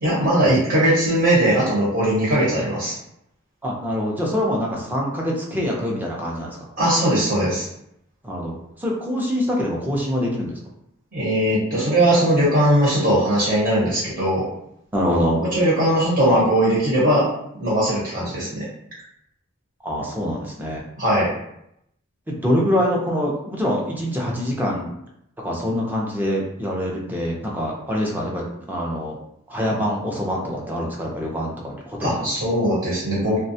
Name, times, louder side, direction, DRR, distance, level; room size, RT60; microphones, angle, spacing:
voice 1, 0.0-2.9 6.8-7.7 11.1-14.4 15.4-17.2 17.5-18.6 21.0-21.3 32.0-33.4, right 1 dB, 50° right, -8 dB, 1.0 m, -19 dB
voice 2, 3.6-6.6 8.2-8.5 8.8-10.6 14.9-15.4 19.8-20.8 22.3-24.9 25.4-29.2 29.5-32.3, equal, 10° right, -3 dB, 0.5 m, -24 dB
2.4 x 2.2 x 2.7 m, 0.78 s
head